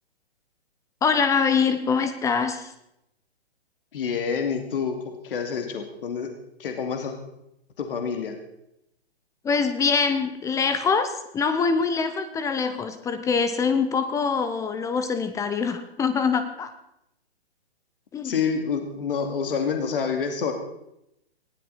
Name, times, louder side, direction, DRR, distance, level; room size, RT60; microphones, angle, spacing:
voice 1, 1.0-2.7 9.4-16.7 18.1-18.3, left 5 dB, 10° left, 12 dB, 0.8 m, -24 dB
voice 2, 3.9-6.3 6.6-7.1 7.8-8.3 18.2-20.5, left 6 dB, 55° left, 5 dB, 2.6 m, -27 dB
19.5 x 16.0 x 4.2 m, 0.81 s
figure-of-eight pair, 125°, 33 cm